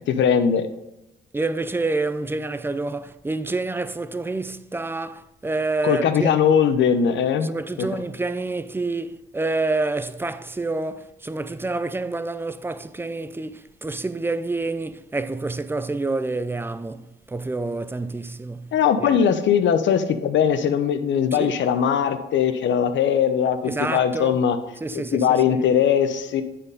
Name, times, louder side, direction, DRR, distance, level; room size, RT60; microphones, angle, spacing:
voice 1, 0.1-0.7 5.8-7.5 7.8-7.9 18.7-24.6 24.9-26.4, left 8 dB, 70° left, 0.9 m, -20 dB
voice 2, 1.3-6.3 7.4-18.7 19.0-19.1 21.3-21.6 23.6-24.4 24.8-25.6, right 3 dB, 10° right, 0.5 m, -28 dB
9.6 x 4.3 x 5.2 m
cardioid pair, 90°, 20 cm